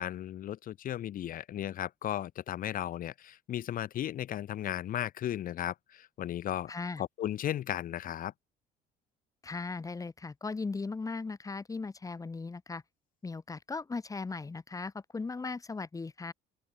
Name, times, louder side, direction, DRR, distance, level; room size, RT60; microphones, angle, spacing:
voice 1, 0.0-6.7 7.0-8.3, left 11 dB, 55° left, 1.4 m, -35 dB
voice 2, 6.7-7.0 9.4-12.8 13.2-16.3, left 4 dB, 20° left, 6.6 m, -38 dB
open air
cardioid pair, 140°, 17 cm